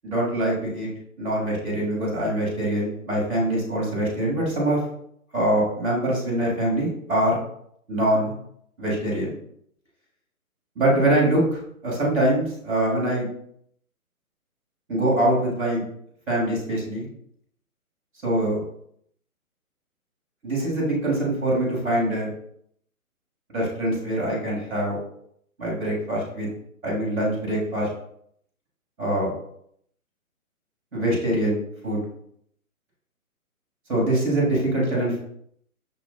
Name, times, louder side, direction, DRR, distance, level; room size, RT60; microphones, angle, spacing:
voice 1, 0.0-0.9 1.2-4.8 5.3-7.4 7.9-8.3 8.8-9.3 10.7-13.3 14.9-15.8 16.3-17.1 18.2-18.6 20.4-22.3 23.5-25.0 25.6-26.5 26.8-27.9 29.0-29.3 30.9-32.0 33.9-35.2, right 1 dB, ahead, -23 dB, 0.5 m, -24 dB
6.6 x 2.4 x 2.2 m, 0.69 s
figure-of-eight pair, 135°, 44 cm